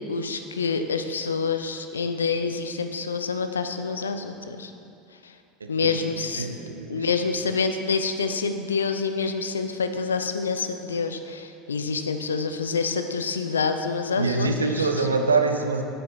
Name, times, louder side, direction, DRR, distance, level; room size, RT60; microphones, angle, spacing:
voice 1, 0.1-4.7 5.2-5.3 5.7-6.5 6.9-15.1, left 5 dB, 80° left, 8 dB, 0.5 m, -27 dB
voice 2, 6.2-7.1 14.1-15.8, right 4 dB, 80° right, 5 dB, 0.6 m, -25 dB
7.9 x 7.7 x 4.2 m, 2.7 s
figure-of-eight pair, 75°, 0 cm